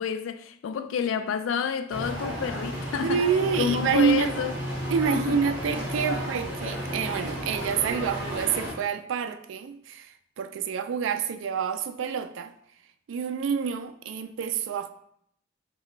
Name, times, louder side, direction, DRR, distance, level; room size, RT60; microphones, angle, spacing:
voice 1, 0.0-3.2 3.6-4.5 5.1-5.4, left 7 dB, 80° left, 0.3 m, -29 dB
sound 1, 1.9-8.7, equal, 10° right, 1.5 m, -33 dB
voice 2, 3.0-4.3 4.9-12.5 13.1-14.9, right 6 dB, 75° right, 0.3 m, -27 dB
4.7 x 2.2 x 3.1 m
head